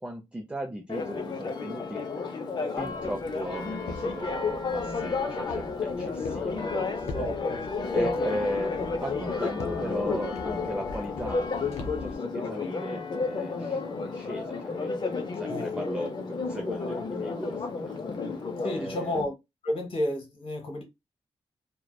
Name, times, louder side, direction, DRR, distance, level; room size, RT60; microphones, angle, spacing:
voice 1, 0.0-2.0 2.7-7.3 7.9-15.0 15.4-19.2, equal, 10° right, 0.4 m, -37 dB
Church bell, 0.9-19.2, left 4 dB, 45° left, 0.5 m, -32 dB
Walk footsteps, 2.8-12.1, left 3 dB, 90° left, 0.5 m, -43 dB
voice 2, 7.2-7.6 8.2-8.3 15.5-15.7 18.6-19.3 19.6-20.8, left 1 dB, 60° left, 1.0 m, -31 dB
2.6 x 2.1 x 2.2 m
cardioid pair, 95°, 11 cm